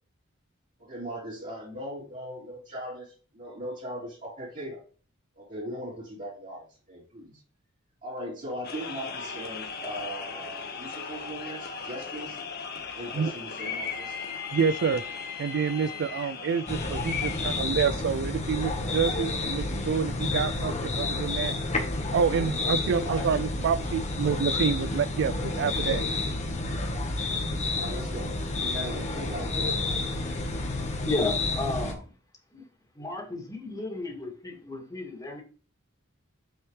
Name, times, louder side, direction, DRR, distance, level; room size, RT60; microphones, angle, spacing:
voice 1, 0.9-4.8 5.3-7.4 8.0-12.4 12.8-14.2 23.0-23.4 27.1-27.4 27.8-28.3 28.6-29.9, equal, 35° right, 3.4 m, -39 dB
sound 1, 8.6-17.6, left 6 dB, 50° left, 1.4 m, -37 dB
voice 2, 14.5-15.0 15.4-21.6 22.1-26.0, right 6 dB, 55° right, 0.3 m, -28 dB
sound 2, 16.7-31.9, left 2 dB, 35° left, 1.3 m, -30 dB
voice 3, 30.1-32.1 32.5-32.6 32.9-35.4, left 2 dB, 20° left, 2.5 m, -34 dB
7.3 x 6.4 x 3.2 m
head